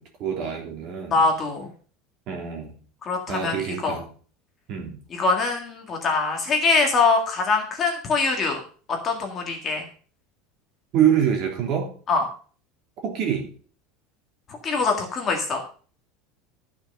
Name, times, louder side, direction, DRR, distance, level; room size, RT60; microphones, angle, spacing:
voice 1, 0.0-1.2 2.3-2.7 3.3-4.1 4.7-5.0 10.9-11.9 13.0-13.5, right 9 dB, 40° right, 1 dB, 3.2 m, -25 dB
voice 2, 1.1-1.7 3.0-4.0 5.1-8.6 8.9-9.8 12.1-12.2 14.6-15.6, left 4 dB, 20° left, 2 dB, 1.8 m, -23 dB
13.5 x 6.1 x 5.5 m, 0.41 s
cardioid pair, 180°, 0 cm